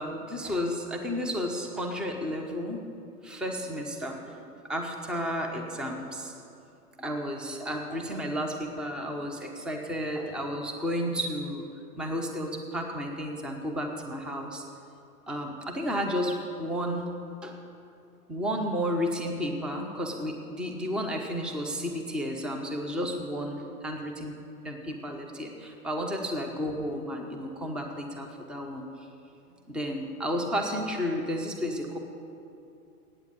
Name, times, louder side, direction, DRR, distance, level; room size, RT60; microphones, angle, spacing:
voice 1, 0.0-2.8 3.2-6.3 7.0-11.7 12.0-14.6 15.3-17.6 18.3-24.3 24.6-28.8 29.7-32.0, equal, ahead, 2 dB, 0.5 m, -32 dB
8.7 x 8.5 x 8.2 m, 2.6 s
hypercardioid pair, 115°, 46 cm